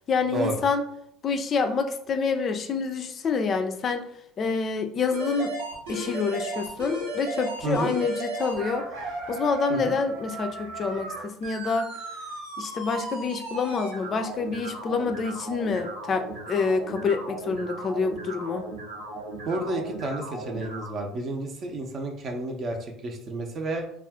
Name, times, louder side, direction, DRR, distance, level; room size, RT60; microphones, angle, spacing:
voice 1, 0.1-0.8 1.2-4.1 4.4-5.5 5.9-8.9 9.3-11.9 12.6-18.7, left 4 dB, 40° left, 7 dB, 0.3 m, -27 dB
sound 1, 5.1-20.9, right 2 dB, 90° right, 0.9 m, -36 dB
voice 2, 7.6-7.9 9.7-10.0 19.5-23.8, right 2 dB, 45° right, 3 dB, 0.6 m, -31 dB
2.4 x 2.3 x 3.5 m, 0.71 s
hypercardioid pair, 70°, 0 cm